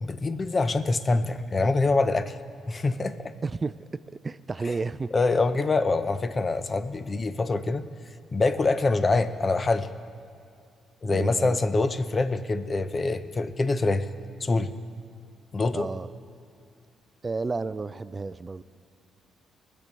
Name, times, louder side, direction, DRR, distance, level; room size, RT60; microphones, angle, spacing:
voice 1, 0.0-2.4 2.7-3.3 5.1-7.9 8.3-9.9 11.0-14.1 14.4-14.7 15.5-15.9, left 3 dB, 30° left, 12 dB, 0.6 m, -25 dB
voice 2, 3.4-3.7 4.2-5.1 11.1-11.6 15.7-16.1 17.2-18.6, right 4 dB, 30° right, 15 dB, 0.3 m, -31 dB
20.5 x 6.9 x 5.2 m, 2.3 s
cardioid pair, 90°, 0 cm